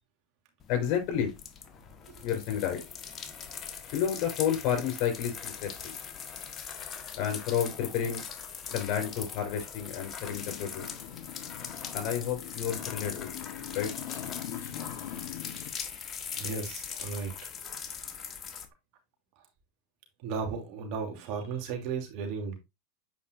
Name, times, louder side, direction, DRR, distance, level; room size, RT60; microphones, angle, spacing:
sound 1, 0.6-18.7, left 7 dB, 30° left, 1.3 m, -41 dB
voice 1, 0.7-1.3 2.2-2.8 3.9-6.0 7.2-8.2 8.7-10.9 11.9-13.3 13.7-13.9, left 9 dB, 50° left, 4.7 m, -30 dB
Motorcycle, 10.2-15.7, left 10 dB, 70° left, 1.2 m, -42 dB
voice 2, 16.3-17.3 17.6-17.9 20.2-22.6, right 5 dB, 55° right, 2.9 m, -35 dB
8.6 x 5.3 x 2.6 m
hypercardioid pair, 105°, 0 cm